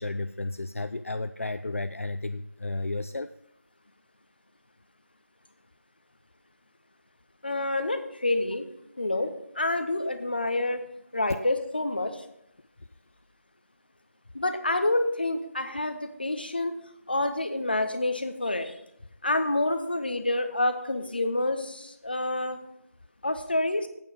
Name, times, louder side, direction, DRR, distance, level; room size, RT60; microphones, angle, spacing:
voice 1, 0.0-3.3, left 2 dB, 60° left, 10 dB, 0.3 m, -33 dB
voice 2, 7.4-8.6 9.0-10.8 11.1-12.2 14.3-16.7 17.1-18.7 19.2-22.6 23.2-23.9, left 2 dB, 35° left, 8 dB, 0.8 m, -28 dB
8.6 x 5.9 x 6.6 m, 0.80 s
figure-of-eight pair, 170°, 8 cm